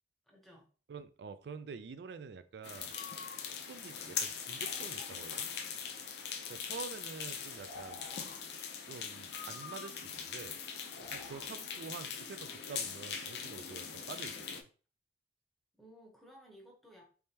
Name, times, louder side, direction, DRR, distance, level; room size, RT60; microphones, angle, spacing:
voice 1, 0.2-0.7 15.8-17.1, equal, ahead, -1 dB, 0.8 m, -57 dB
voice 2, 0.9-2.9 3.5-5.5 6.5-8.1 8.8-10.6 11.1-14.6, right 5 dB, 65° right, 11 dB, 0.3 m, -47 dB
sound 1, 2.6-14.6, left 7 dB, 60° left, 0.5 m, -41 dB
Breathing, 2.9-3.4 4.4-5.4 5.8-6.2 7.4-8.4 9.3-10.1 10.8-11.5, left 4 dB, 85° left, 0.9 m, -51 dB
3.5 x 3.2 x 2.8 m, 0.38 s
head